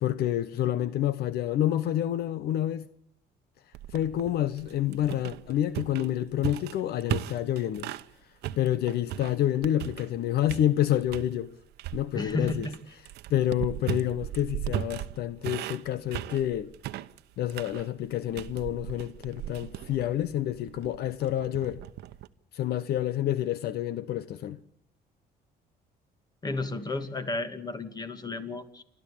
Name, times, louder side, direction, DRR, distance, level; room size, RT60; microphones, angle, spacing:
voice 1, 0.0-2.9 3.9-7.9 8.6-11.5 11.9-12.7 13.3-16.7 17.4-21.8 22.5-24.6, left 12 dB, 70° left, 1.0 m, -28 dB
sound 1, 3.7-8.1 8.4-10.2 10.5-11.3 11.8-22.3, right 13 dB, 80° right, 0.9 m, -37 dB
voice 2, 12.1-12.7 26.4-28.8, left 2 dB, 25° left, 2.4 m, -32 dB
28.0 x 12.5 x 8.7 m
cardioid pair, 110°, 17 cm